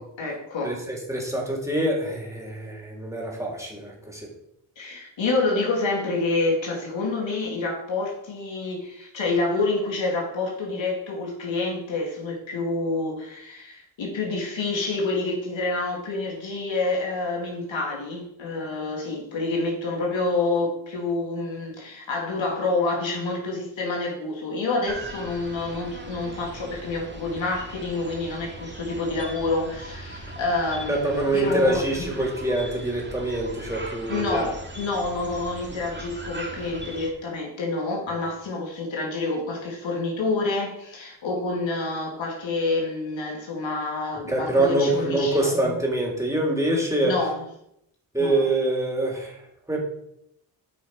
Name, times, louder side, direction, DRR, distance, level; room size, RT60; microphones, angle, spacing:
voice 1, 0.0-0.8 4.8-32.1 34.1-45.8 47.0-47.4 48.2-48.5, left 3 dB, 70° left, -1 dB, 2.6 m, -28 dB
voice 2, 0.6-4.3 30.9-34.4 44.3-47.2 48.1-49.4 49.7-49.8, right 2 dB, 5° right, -1 dB, 3.4 m, -25 dB
sound 1, 24.9-37.1, right 1 dB, 20° right, 2.1 m, -39 dB
8.4 x 5.7 x 4.9 m, 0.77 s
supercardioid pair, 50°, 47 cm